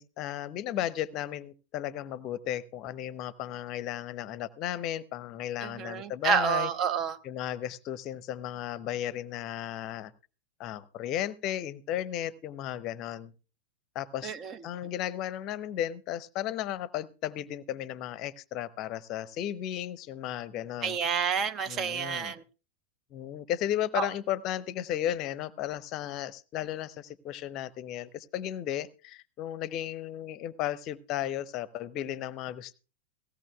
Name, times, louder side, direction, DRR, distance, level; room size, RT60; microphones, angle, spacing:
voice 1, 0.0-6.7 7.2-10.1 10.6-13.3 13.9-14.3 14.6-21.0 21.7-22.3 23.1-32.7, left 12 dB, 40° left, 0.7 m, -34 dB
voice 2, 5.6-7.2 14.2-14.6 20.8-22.4 23.9-24.1, right 7 dB, 30° right, 0.7 m, -29 dB
18.0 x 16.0 x 2.3 m
figure-of-eight pair, 90°, 0 cm